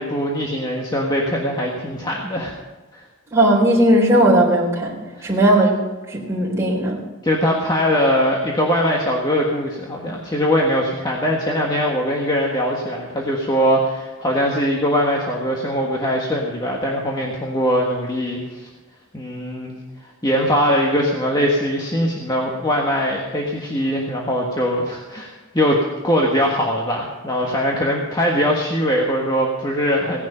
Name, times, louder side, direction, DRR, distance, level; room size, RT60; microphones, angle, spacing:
voice 1, 0.0-2.5 2.9-3.0 5.1-5.3 7.2-18.7 19.1-19.8 20.2-30.3, equal, 20° left, -1 dB, 1.5 m, -21 dB
voice 2, 3.3-4.9 5.2-5.8 6.1-7.0, right 1 dB, 15° right, -4 dB, 3.8 m, -16 dB
17.5 x 10.5 x 5.6 m, 1.3 s
head